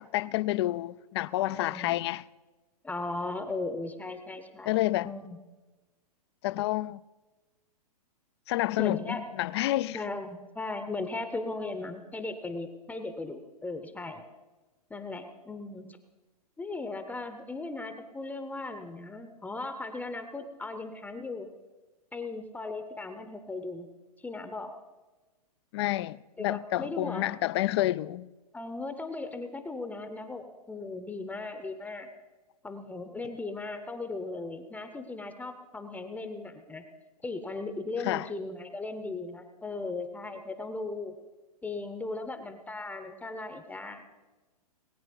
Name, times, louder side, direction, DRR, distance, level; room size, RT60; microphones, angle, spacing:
voice 1, 0.0-2.2 4.7-5.1 6.4-7.0 8.5-10.0 25.7-28.3 38.0-38.3, left 16 dB, 45° left, 0.4 m, -29 dB
voice 2, 1.5-1.9 2.8-4.8 5.0-5.4 8.8-9.2 9.9-14.2 14.9-16.0 16.6-21.5 22.1-23.9 24.2-24.7 26.4-27.3 28.5-32.1 32.6-36.8 37.2-41.1 41.6-44.0, left 3 dB, 5° left, 0.8 m, -37 dB
20.0 x 8.7 x 5.4 m
hypercardioid pair, 115°, 20 cm